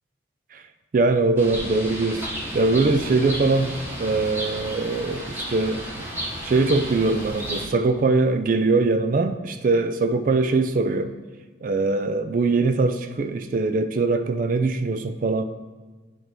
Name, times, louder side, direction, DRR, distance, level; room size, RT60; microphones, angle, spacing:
voice 1, 0.9-2.3 2.5-6.1 6.4-11.2 11.6-15.4, right 3 dB, 45° right, 9 dB, 0.3 m, -22 dB
Bird, 1.4-7.6, equal, 10° right, 1.1 m, -33 dB
8.7 x 3.0 x 4.8 m, 1.4 s
head